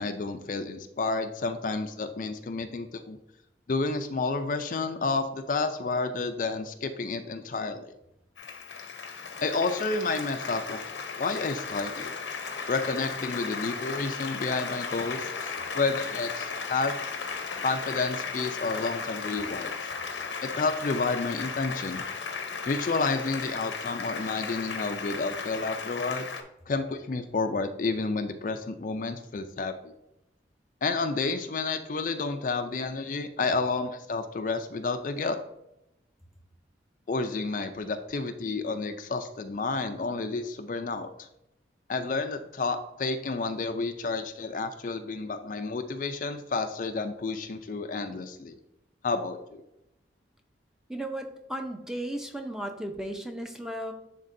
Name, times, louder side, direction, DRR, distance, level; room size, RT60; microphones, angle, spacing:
voice 1, 0.0-3.2 3.7-7.9 9.4-10.8 11.2-12.1 12.7-16.9 17.6-19.9 20.4-22.1 22.7-26.2 26.7-29.9 30.8-35.4 37.1-41.3 41.9-48.5 49.0-49.6, left 3 dB, 45° left, 8 dB, 0.4 m, -30 dB
Applause, 8.4-26.4, left 5 dB, 85° left, 0.8 m, -36 dB
voice 2, 50.9-53.9, right 1 dB, 5° right, 4 dB, 0.6 m, -35 dB
10.5 x 3.7 x 2.6 m, 0.86 s
head